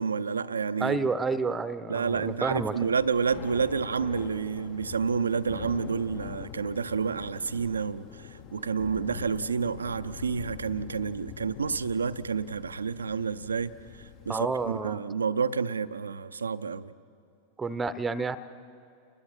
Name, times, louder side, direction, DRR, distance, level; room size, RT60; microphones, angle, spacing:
voice 1, 0.0-1.0 1.9-16.9, right 5 dB, 75° right, 0.5 m, -29 dB
voice 2, 0.8-2.7 14.3-15.0 17.6-18.4, right 4 dB, 15° right, 0.8 m, -29 dB
Thunder / Rain, 2.0-14.9, left 8 dB, 40° left, 1.0 m, -44 dB
29.5 x 20.5 x 4.4 m
figure-of-eight pair, 90°, 0 cm